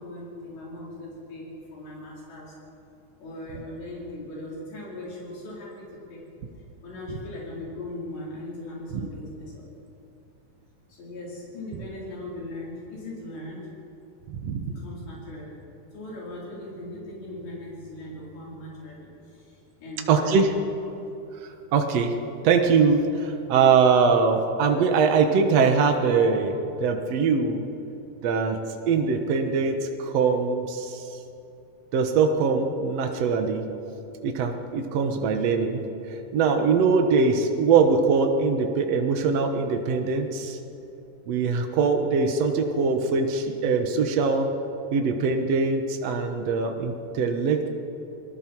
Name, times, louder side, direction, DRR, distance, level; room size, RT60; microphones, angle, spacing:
voice 1, 0.0-2.5 3.2-6.2 6.8-9.7 10.9-13.7 14.7-15.6 15.9-20.4, left 1 dB, 80° left, -5 dB, 6.6 m, -39 dB
voice 2, 14.3-14.8 20.1-20.5 21.7-22.1 22.4-27.6 28.2-28.6 28.9-31.1 31.9-33.6 34.2-35.8 36.1-40.6 41.3-44.5 44.9-47.7, right 5 dB, 85° right, 5 dB, 1.4 m, -22 dB
28.0 x 20.5 x 4.6 m, 2.9 s
omnidirectional pair, 4.9 m